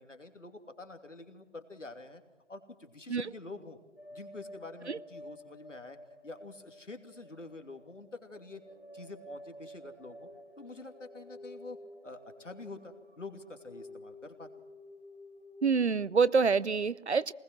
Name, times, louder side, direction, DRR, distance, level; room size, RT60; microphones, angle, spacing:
voice 1, 0.0-2.2 2.5-3.8 4.1-6.0 6.2-8.6 8.9-10.3 10.6-11.8 12.0-14.5, left 3 dB, 90° left, 6 dB, 2.9 m, -47 dB
sound 1, 4.0-15.8, left 1 dB, 45° left, 2.1 m, -51 dB
voice 2, 15.6-17.3, right 5 dB, 65° right, 20 dB, 0.7 m, -26 dB
23.0 x 20.0 x 6.1 m, 1.2 s
figure-of-eight pair, 175°, 36 cm